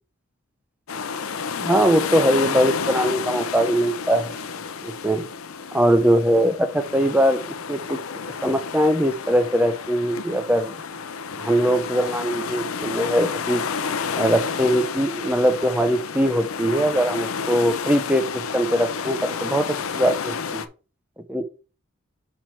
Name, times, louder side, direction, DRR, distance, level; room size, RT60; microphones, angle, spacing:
sound 1, 0.9-20.7, left 6 dB, 80° left, 0.6 m, -30 dB
voice 1, 1.6-4.3 4.8-5.2 5.7-8.0 8.4-10.8 11.4-13.6 14.2-18.2 18.5-20.6 21.3-21.5, equal, 5° right, 9 dB, 0.5 m, -21 dB
5.7 x 4.5 x 4.5 m, 0.34 s
head